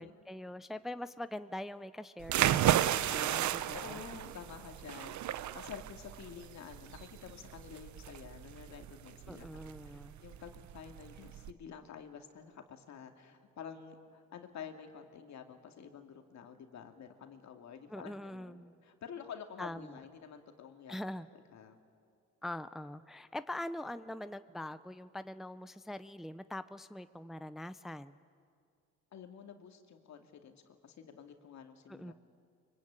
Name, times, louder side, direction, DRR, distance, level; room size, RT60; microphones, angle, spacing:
voice 1, 0.0-4.0 9.3-10.2 17.9-18.8 19.6-20.0 20.9-21.3 22.4-28.2 31.9-32.1, left 1 dB, ahead, 12 dB, 0.6 m, -43 dB
sound 1, 2.2-11.5, right 12 dB, 70° right, 0.8 m, -33 dB
voice 2, 3.7-9.5 9.9-21.0 21.5-21.8 29.1-32.1, left 7 dB, 65° left, 5 dB, 2.3 m, -49 dB
24.0 x 23.5 x 8.9 m, 2.3 s
cardioid pair, 90°, 30 cm